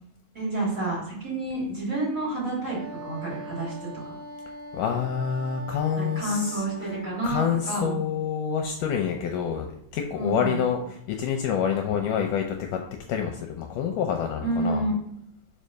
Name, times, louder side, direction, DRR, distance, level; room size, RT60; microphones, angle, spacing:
voice 1, 0.3-4.1 6.0-8.0 10.1-10.6 14.4-14.9, right 2 dB, 25° right, -6 dB, 3.6 m, -29 dB
Wind instrument woodwind instrument, 2.7-7.3, right 2 dB, 80° right, 2.3 m, -40 dB
voice 2, 4.7-7.0 7.2-9.7 9.9-12.8 13.1-14.8, left 8 dB, 75° left, 4 dB, 2.0 m, -27 dB
5.5 x 5.3 x 6.4 m, 0.73 s
omnidirectional pair, 4.1 m